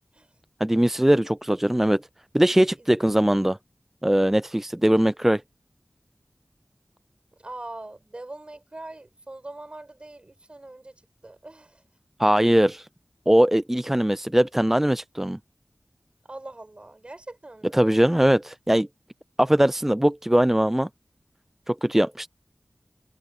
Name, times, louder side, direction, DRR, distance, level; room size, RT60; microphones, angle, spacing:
voice 1, 0.6-2.0 2.3-3.6 4.0-5.4 12.2-12.9 13.3-15.4 17.7-18.9 19.4-20.9 21.7-22.3, right 1 dB, 10° right, 0.4 m, -20 dB
voice 2, 7.4-11.8 16.2-17.8, right 2 dB, 45° right, 6.5 m, -42 dB
wide cardioid pair, 50°, 3 cm